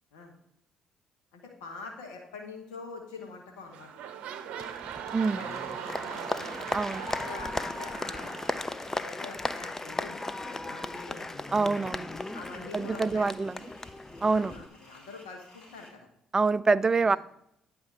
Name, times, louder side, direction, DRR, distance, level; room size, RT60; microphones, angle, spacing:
voice 1, 1.3-4.0 5.4-6.5 7.2-8.3 9.0-11.6 12.3-13.4 14.2-16.1 17.0-17.2, left 4 dB, 80° left, 1.3 m, -45 dB
sound 1, 3.1-3.4 3.7-9.5 10.2-10.3, right 8 dB, 65° right, 0.7 m, -40 dB
Applause, 4.6-14.7, left 2 dB, 20° left, 0.6 m, -36 dB
sound 2, 5.2-15.9, left 1 dB, 40° left, 3.4 m, -56 dB
voice 2, 6.7-7.1 11.5-12.1 12.7-13.6 14.2-14.5 16.3-17.2, right 4 dB, 30° right, 0.4 m, -26 dB
9.5 x 4.3 x 5.6 m
hypercardioid pair, 50°, 2 cm